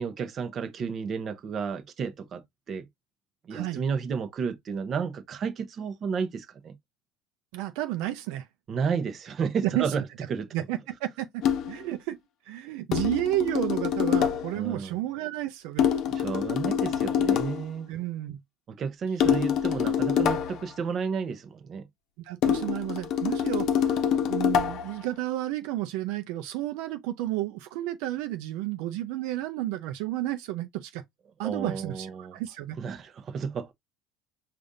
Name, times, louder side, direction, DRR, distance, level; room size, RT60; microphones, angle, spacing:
voice 1, 0.0-2.9 3.4-6.7 8.7-10.0 10.3-10.5 14.5-15.0 16.1-17.9 18.7-21.8 31.4-32.4 32.8-33.7, right 6 dB, 35° right, 0.8 m, -32 dB
voice 2, 3.5-3.8 7.5-8.5 9.6-9.9 10.5-11.4 11.7-12.2 12.4-15.9 17.9-18.4 22.2-24.0 24.3-31.0 31.4-32.8, right 14 dB, 75° right, 0.5 m, -31 dB
sound 1, 11.4-11.8 12.9-14.6 15.8-17.7 19.2-20.7 22.4-25.0, left 8 dB, 50° left, 0.7 m, -25 dB
5.0 x 2.5 x 2.6 m
cardioid pair, 135°, 0 cm